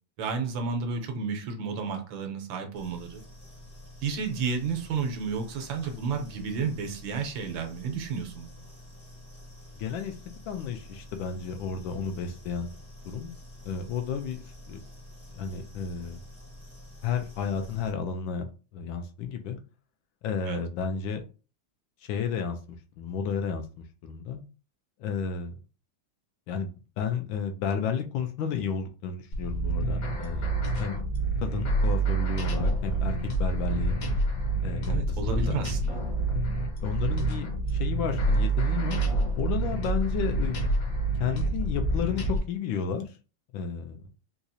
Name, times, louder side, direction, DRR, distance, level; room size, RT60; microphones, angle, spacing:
voice 1, 0.2-3.2 4.0-8.5 20.5-20.6 34.5-36.0, right 5 dB, 80° right, 4 dB, 1.5 m, -32 dB
sound 1, 2.7-17.9, left 1 dB, 15° left, 0.6 m, -48 dB
voice 2, 9.8-10.2 10.5-12.7 13.0-13.3 13.6-14.8 15.3-16.2 17.0-19.6 20.2-21.2 22.1-22.6 23.0-23.6 24.0-24.4 25.0-25.5 26.5-26.7 27.0-30.5 30.8-31.0 31.4-34.0 34.6-35.6 36.8-39.0 39.3-40.6 41.2-43.1 43.5-44.1, left 6 dB, 80° left, 6 dB, 1.3 m, -32 dB
sound 2, 29.3-42.4, right 2 dB, 55° left, 1.2 m, -27 dB
4.1 x 2.4 x 2.7 m, 0.34 s
omnidirectional pair, 2.2 m